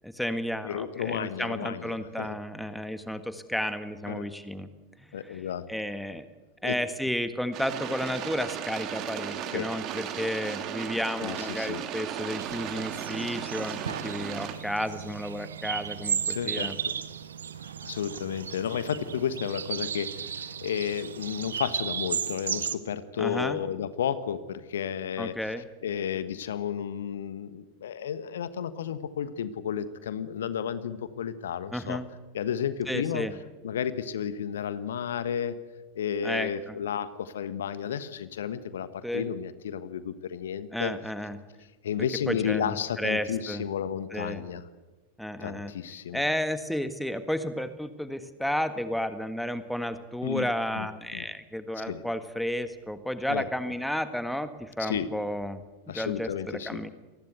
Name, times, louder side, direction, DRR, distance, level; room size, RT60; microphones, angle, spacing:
voice 1, 0.0-4.7 5.0-5.4 5.7-6.3 6.6-16.8 23.2-23.6 25.2-25.6 31.7-32.1 32.9-33.3 36.2-36.8 39.0-39.3 40.7-41.4 42.3-43.6 44.1-44.4 45.2-45.7 46.1-55.6 55.9-56.9, equal, ahead, 11 dB, 1.6 m, -32 dB
voice 2, 0.6-2.3 4.1-4.3 5.1-5.6 6.6-6.7 9.5-9.6 11.2-11.8 16.2-16.7 17.6-25.3 25.8-32.0 32.3-33.3 33.6-35.5 35.9-40.9 41.8-44.6 45.4-46.2 50.2-50.5 50.7-50.9 51.1-51.2 51.8-52.0 53.3-53.4 54.8-55.1 55.9-56.8, left 8 dB, 60° left, 14 dB, 1.4 m, -32 dB
sound 1, 7.5-14.5, right 9 dB, 35° right, 2.6 m, -36 dB
sound 2, 12.4-22.8, right 7 dB, 70° right, 1.3 m, -35 dB
27.0 x 20.0 x 8.1 m, 1.1 s
figure-of-eight pair, 90°, 0 cm